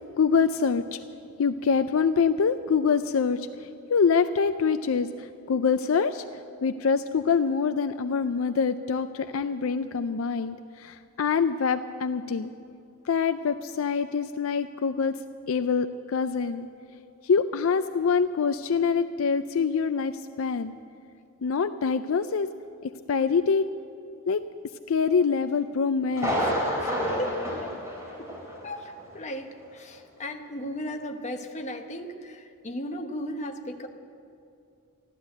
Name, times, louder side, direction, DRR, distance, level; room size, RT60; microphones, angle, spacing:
voice 1, 0.2-1.0 1.4-6.2 6.6-12.5 13.0-15.1 15.5-16.7 17.2-20.1 20.4-20.7 21.4-22.5 22.8-23.7 24.3-24.4 24.9-26.3 26.7-27.2, left 5 dB, 65° left, 9 dB, 0.4 m, -25 dB
Thunder, 26.1-28.7 29.0-29.1 29.6-29.7, equal, 15° right, 3.8 m, -29 dB
voice 2, 26.8-27.7 28.2-28.4 28.6-33.9, equal, 35° left, 4 dB, 1.0 m, -36 dB
14.5 x 12.0 x 7.8 m, 2.5 s
head